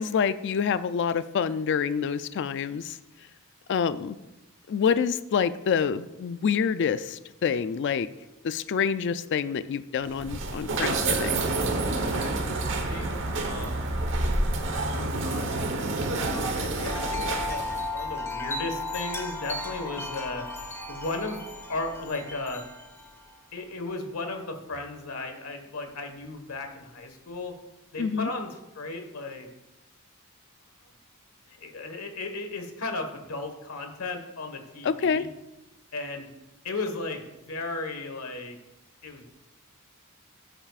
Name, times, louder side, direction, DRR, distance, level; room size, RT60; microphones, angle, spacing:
voice 1, 0.0-3.0 3.7-4.2 4.7-8.1 8.4-11.4 28.0-28.3 34.8-35.3, left 6 dB, 55° left, 13 dB, 0.3 m, -27 dB
sound 1, 10.0-17.9, right 2 dB, 60° right, 1.1 m, -28 dB
voice 2, 12.1-14.0 14.9-15.8 16.6-20.5 20.9-21.4 21.7-22.6 23.5-27.6 27.9-29.5 31.5-35.3 35.9-36.3 36.6-38.6 39.0-39.3, left 3 dB, 80° left, 5 dB, 1.5 m, -35 dB
Wind chime, 16.9-23.4, left 2 dB, 10° left, 1.4 m, -35 dB
13.0 x 8.8 x 2.4 m, 0.97 s
head